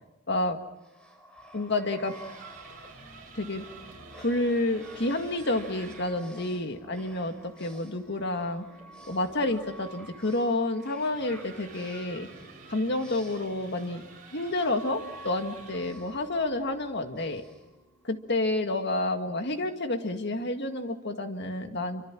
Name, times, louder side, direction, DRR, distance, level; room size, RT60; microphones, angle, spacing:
voice 1, 0.3-0.6 1.5-2.2 3.4-3.7 4.2-8.7 9.1-12.3 12.7-14.0 14.3-17.4 18.0-22.0, left 2 dB, 55° left, 6 dB, 1.9 m, -29 dB
sound 1, 0.8-18.4, right 1 dB, 5° left, 4.8 m, -50 dB
sound 2, 2.0-6.2 8.8-16.0, right 4 dB, 40° right, 5.9 m, -50 dB
28.5 x 25.0 x 6.1 m, 1.0 s
head